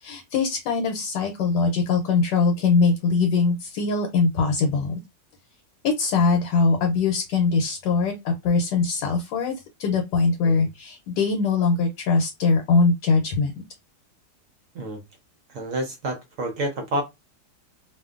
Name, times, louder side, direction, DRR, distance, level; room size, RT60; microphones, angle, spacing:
voice 1, 0.0-5.0 5.8-9.5 9.8-13.5, left 4 dB, 80° left, 1.2 m, -22 dB
voice 2, 15.5-17.0, right 1 dB, 70° right, 0.7 m, -29 dB
2.6 x 2.4 x 2.3 m
omnidirectional pair, 1.9 m